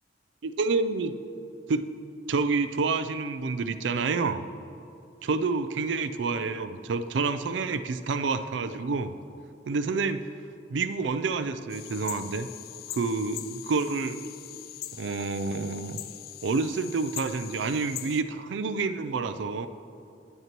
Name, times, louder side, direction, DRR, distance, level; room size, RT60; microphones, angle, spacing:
voice 1, 0.4-1.1 1.7-1.9 2.3-4.5 5.2-9.1 9.7-10.2 10.7-12.5 12.9-14.2 15.0-16.0 16.4-19.7, right 4 dB, 75° right, 11 dB, 0.4 m, -28 dB
sound 1, 11.7-18.2, left 13 dB, 55° left, 0.3 m, -41 dB
11.0 x 9.3 x 3.0 m, 2.5 s
head